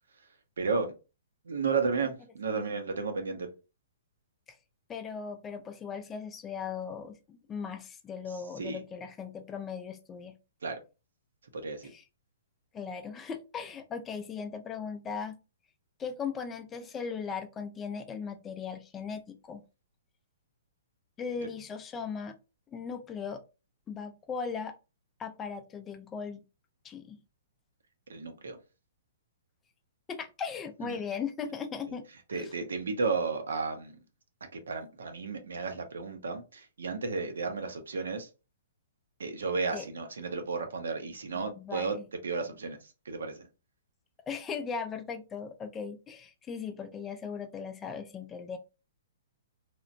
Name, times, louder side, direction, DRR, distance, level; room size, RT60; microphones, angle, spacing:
voice 1, 0.6-0.9 1.4-3.5 8.6-8.8 10.6-10.8 11.5-11.9 28.1-28.6 30.8-31.0 31.9-32.0 32.3-34.0 34.5-38.3 39.2-42.0 42.2-43.5, right 4 dB, 85° right, 0.7 m, -33 dB
voice 2, 4.9-10.4 11.8-12.0 12.7-15.3 16.0-19.6 21.2-22.4 22.7-23.4 23.9-24.7 25.2-26.4 26.8-27.2 30.1-32.5 39.7-39.9 41.3-42.1 44.3-48.6, left 6 dB, 15° left, 0.3 m, -38 dB
2.9 x 2.0 x 2.5 m
hypercardioid pair, 150°, 0 cm